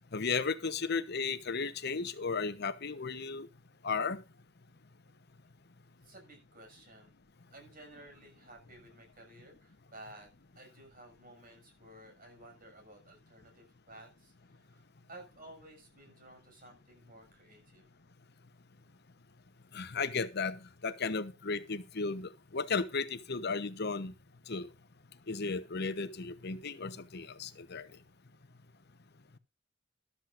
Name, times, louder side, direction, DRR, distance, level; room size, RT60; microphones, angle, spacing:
voice 1, 0.1-3.5 3.8-4.2 19.7-24.1 24.5-24.7 25.3-27.9, left 4 dB, 55° left, 11 dB, 1.0 m, -35 dB
voice 2, 6.0-7.1 7.5-14.8 15.1-17.8, right 1 dB, 45° right, 3 dB, 6.6 m, -54 dB
14.0 x 12.5 x 2.6 m, 0.28 s
head